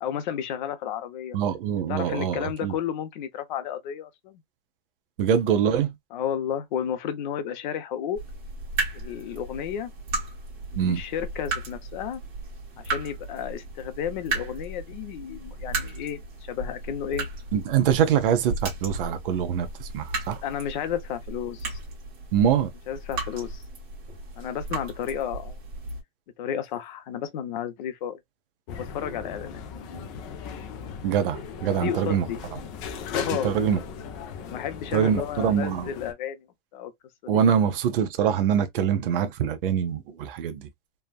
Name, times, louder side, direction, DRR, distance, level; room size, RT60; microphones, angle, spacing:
voice 1, 0.0-1.4 1.9-4.4 6.1-8.2 8.9-9.9 10.7-12.2 12.8-16.2 16.5-17.3 20.4-21.8 22.9-23.6 24.4-25.6 26.4-28.2 28.7-29.6 31.7-32.4 33.1-33.5 34.4-36.5 36.7-36.9 37.2-37.4, left 9 dB, 50° left, 0.7 m, -32 dB
voice 2, 1.3-2.7 5.2-5.9 10.8-11.0 17.5-20.4 22.3-22.7 31.0-32.3 33.4-33.8 34.9-35.9 37.3-40.7, right 8 dB, 65° right, 0.8 m, -24 dB
sound 1, 8.1-26.0, right 3 dB, 30° right, 1.4 m, -35 dB
sound 2, 28.7-36.1, left 6 dB, 25° left, 0.4 m, -37 dB
3.3 x 2.3 x 2.2 m
supercardioid pair, 175°, 30 cm